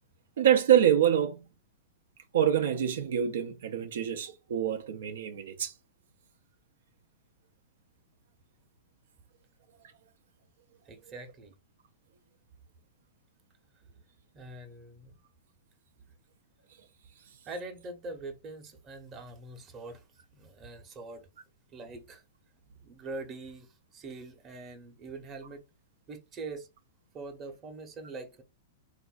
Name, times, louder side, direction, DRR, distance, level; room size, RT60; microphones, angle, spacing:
voice 1, 0.4-1.5 2.3-5.7, right 10 dB, 70° right, 0.5 m, -26 dB
voice 2, 10.9-11.5 14.3-15.2 17.5-20.0 20.3-21.3 21.7-22.2 22.8-25.6 26.1-26.7 27.1-28.4, right 3 dB, 30° right, 0.9 m, -43 dB
3.7 x 2.5 x 2.4 m
hypercardioid pair, 105°, 0 cm